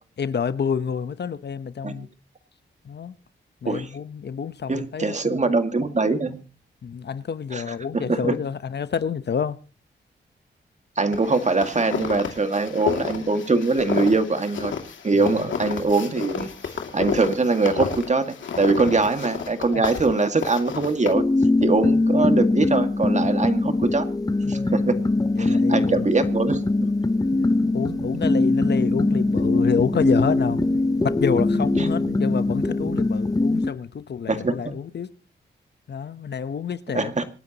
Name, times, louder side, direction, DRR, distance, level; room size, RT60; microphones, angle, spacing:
voice 1, 0.2-2.1 2.8-3.1 3.6-5.4 6.8-9.6 15.2-15.3 19.7-19.8 24.4-25.0 25.4-26.0 27.7-30.6 31.0-35.1 35.9-37.1, left 6 dB, 60° left, 1.0 m, -28 dB
voice 2, 4.7-6.4 7.5-8.4 11.0-14.7 15.0-16.5 16.9-21.2 21.6-24.1 24.5-25.0 25.4-26.9 31.8-31.9 34.3-34.8 36.9-37.2, right 3 dB, 35° right, 2.0 m, -23 dB
sound 1, 11.1-21.1, left 6 dB, 75° left, 2.5 m, -31 dB
sound 2, 21.1-33.7, left 2 dB, 20° left, 0.8 m, -22 dB
sound 3, 27.3-33.0, right 6 dB, 55° right, 1.1 m, -38 dB
26.5 x 9.5 x 3.0 m
cardioid pair, 55°, 20 cm